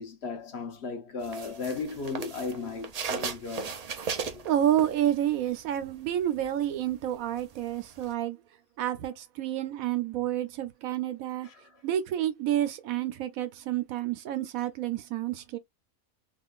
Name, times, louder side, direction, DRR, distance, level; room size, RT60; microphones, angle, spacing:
voice 1, 0.0-3.8 4.2-4.4 11.4-11.5, left 4 dB, 55° left, 0.9 m, -36 dB
sound 1, 1.2-5.4 5.8-8.1, right 6 dB, 70° right, 0.3 m, -37 dB
voice 2, 4.4-8.4 8.8-11.5 11.8-15.6, right 11 dB, 85° right, 1.1 m, -29 dB
3.7 x 3.0 x 2.4 m
omnidirectional pair, 1.5 m